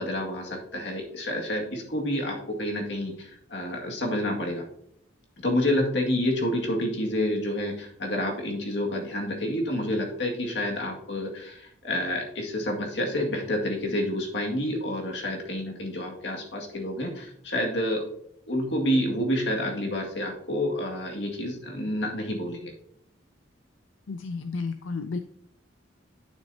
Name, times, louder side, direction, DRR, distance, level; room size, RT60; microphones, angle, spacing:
voice 1, 0.0-4.6 5.4-18.0 18.5-22.7, left 1 dB, 65° left, 0 dB, 2.1 m, -29 dB
voice 2, 24.1-25.2, left 4 dB, 90° left, 9 dB, 0.5 m, -32 dB
11.5 x 6.3 x 2.8 m, 0.69 s
head